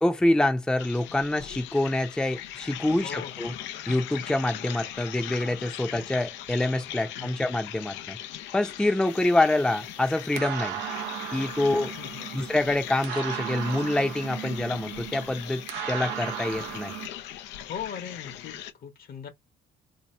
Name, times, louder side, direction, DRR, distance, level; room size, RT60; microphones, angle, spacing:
voice 1, 0.0-3.5 3.9-8.2 8.5-10.8 11.3-11.9 12.3-16.9, left 1 dB, 5° left, 0.6 m, -26 dB
sound 1, 0.8-18.7, left 12 dB, 90° left, 0.5 m, -40 dB
voice 2, 3.0-3.6 7.2-7.5 12.0-12.5 17.7-19.3, left 7 dB, 55° left, 1.0 m, -40 dB
sound 2, 9.1-17.1, right 11 dB, 90° right, 0.6 m, -37 dB
2.8 x 2.3 x 4.2 m
cardioid pair, 90°, 18 cm